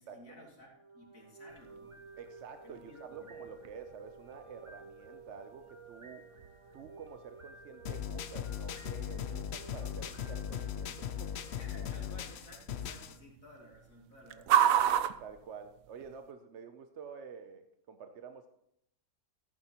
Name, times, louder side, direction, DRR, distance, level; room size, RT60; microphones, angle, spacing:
voice 1, 0.0-2.0 2.6-3.3 11.6-14.8, left 1 dB, 75° left, -2 dB, 3.2 m, -55 dB
sound 1, 0.7-12.8, right 2 dB, 30° right, 0.7 m, -53 dB
sound 2, 1.5-16.3, right 10 dB, 85° right, 1.1 m, -37 dB
voice 2, 2.2-6.3 6.7-11.3 14.4-14.5 15.2-18.5, right 6 dB, 60° right, 7 dB, 0.9 m, -49 dB
sound 3, 7.9-13.2, left 9 dB, 60° left, 0.9 m, -39 dB
14.5 x 9.8 x 2.9 m, 0.77 s
omnidirectional pair, 1.4 m